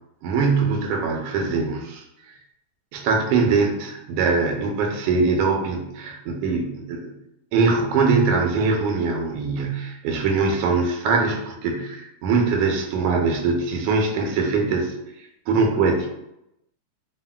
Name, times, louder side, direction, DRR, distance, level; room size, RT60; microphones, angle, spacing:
voice 1, 0.2-2.0 2.9-7.1 7.5-14.9 15.5-16.1, right 4 dB, 85° right, 2 dB, 1.5 m, -22 dB
3.7 x 2.0 x 2.2 m, 0.84 s
omnidirectional pair, 2.4 m